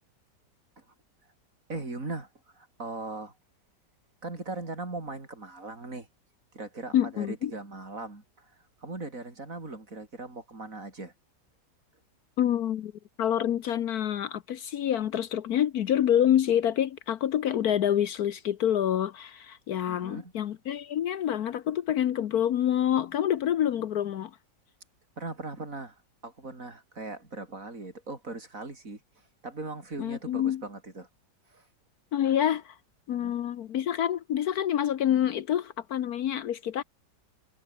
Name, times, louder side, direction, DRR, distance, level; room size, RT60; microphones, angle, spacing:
voice 1, 1.7-3.4 4.2-6.1 6.5-11.1 19.9-20.3 25.2-31.1 31.5-31.7 33.1-33.3, right 2 dB, 50° right, 4.8 m, -39 dB
voice 2, 6.9-7.5 12.4-12.9 13.2-24.3 30.0-30.6 32.1-32.7 33.1-36.8, left 10 dB, 65° left, 1.2 m, -27 dB
omnidirectional pair, 1.9 m